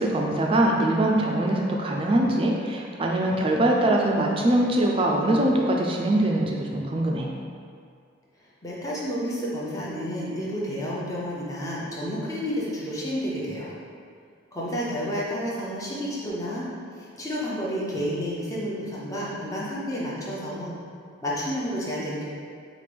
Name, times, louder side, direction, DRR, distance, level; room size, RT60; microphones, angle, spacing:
voice 1, 0.0-7.3, right 1 dB, 25° right, 0 dB, 0.4 m, -23 dB
voice 2, 8.6-13.7 14.5-16.7 16.9-20.8 21.2-22.2, equal, 15° left, -7 dB, 0.7 m, -30 dB
4.9 x 2.5 x 3.4 m, 2.2 s
head